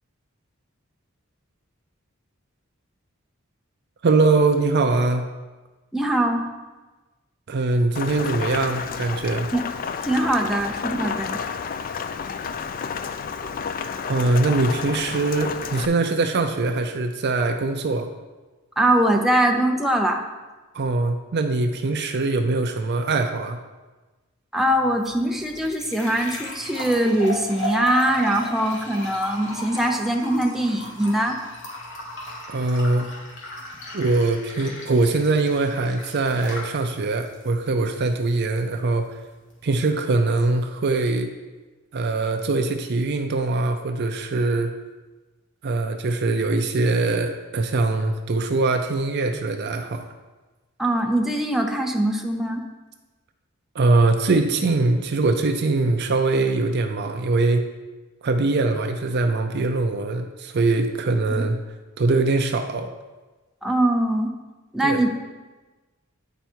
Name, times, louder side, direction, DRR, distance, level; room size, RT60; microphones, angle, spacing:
voice 1, 4.0-5.2 7.5-9.5 14.1-18.1 20.7-23.6 32.5-33.1 33.9-39.2 39.6-41.3 41.9-44.7 45.6-50.1 53.7-57.6 58.2-61.6 62.0-62.9 64.8-65.0, right 3 dB, 50° right, 6 dB, 0.5 m, -22 dB
voice 2, 5.9-6.5 9.5-9.7 10.0-11.4 18.8-20.2 24.5-31.4 50.8-52.6 61.3-61.5 63.6-64.4 64.7-65.1, right 1 dB, ahead, 1 dB, 0.6 m, -22 dB
Rain, 7.9-15.9, left 6 dB, 40° left, 0.3 m, -31 dB
sound 1, 24.7-39.7, equal, 60° left, 1.6 m, -37 dB
9.2 x 4.6 x 4.4 m, 1.2 s
head